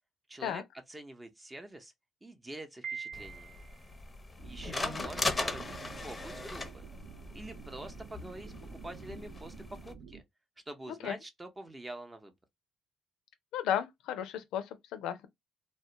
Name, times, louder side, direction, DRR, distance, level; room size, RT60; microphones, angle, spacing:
voice 1, 0.3-0.6 0.9-1.9 2.2-3.6 4.4-6.9 7.3-9.5 9.8-10.2 10.7-12.3, right 1 dB, 20° right, 0.7 m, -46 dB
Piano, 2.8-3.9, right 6 dB, 55° right, 0.9 m, -42 dB
sound 1, 3.1-9.9, left 3 dB, 25° left, 0.6 m, -39 dB
sound 2, 4.4-10.2, right 6 dB, 70° right, 0.5 m, -49 dB
voice 2, 13.5-15.3, left 10 dB, 80° left, 0.4 m, -34 dB
2.2 x 2.1 x 2.8 m
supercardioid pair, 65°, 0 cm